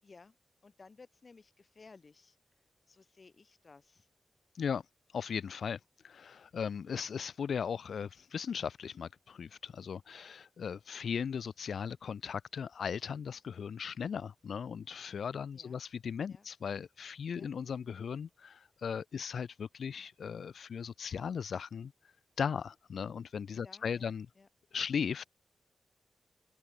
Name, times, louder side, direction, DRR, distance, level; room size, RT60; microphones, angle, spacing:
voice 1, 0.0-0.3 0.6-2.4 2.9-4.1 15.5-15.8 16.3-16.5 17.3-17.5 23.6-24.5, left 4 dB, 40° left, 2.7 m, -58 dB
voice 2, 5.1-5.8 6.0-21.9 22.4-24.3 24.7-25.3, left 7 dB, 80° left, 1.2 m, -37 dB
wide cardioid pair, 150°, 0 cm